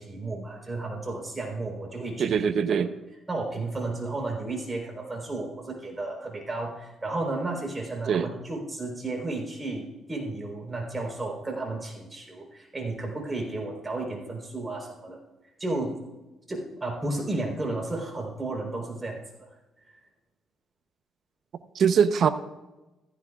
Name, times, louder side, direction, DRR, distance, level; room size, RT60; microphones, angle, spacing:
voice 1, 0.0-2.3 3.3-15.2 15.6-16.0 16.5-19.5 19.9-20.0, right 2 dB, 25° right, -1 dB, 4.1 m, -33 dB
voice 2, 2.2-2.9 8.1-8.3 21.7-22.3, right 7 dB, 60° right, 10 dB, 0.8 m, -22 dB
15.0 x 14.5 x 2.4 m, 1.0 s
cardioid pair, 90°, 0 cm